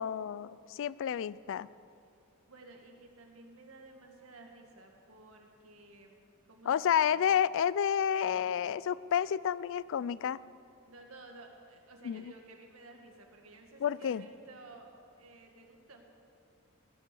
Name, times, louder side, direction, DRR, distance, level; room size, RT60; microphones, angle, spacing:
voice 1, 0.0-1.7 6.7-10.4 12.0-12.2 13.8-14.2, left 8 dB, 60° left, 19 dB, 0.3 m, -30 dB
voice 2, 2.5-7.3 10.8-16.2, right 2 dB, 75° right, 2 dB, 2.0 m, -54 dB
16.5 x 9.2 x 6.9 m, 2.5 s
head